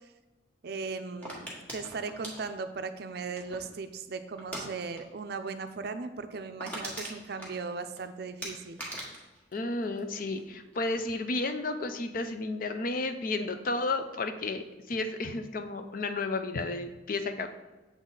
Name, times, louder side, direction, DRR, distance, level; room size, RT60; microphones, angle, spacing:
voice 1, 0.6-8.9, right 4 dB, 55° right, 9 dB, 0.4 m, -38 dB
sound 1, 1.2-3.8 4.4-4.7 5.0-5.2 5.5-5.6 6.0-6.1 6.3-8.0 8.4-10.4 10.7-11.2, right 1 dB, 10° left, 1.4 m, -41 dB
voice 2, 9.5-17.5, left 3 dB, 45° left, 8 dB, 0.5 m, -32 dB
7.2 x 4.0 x 3.9 m, 1.2 s
head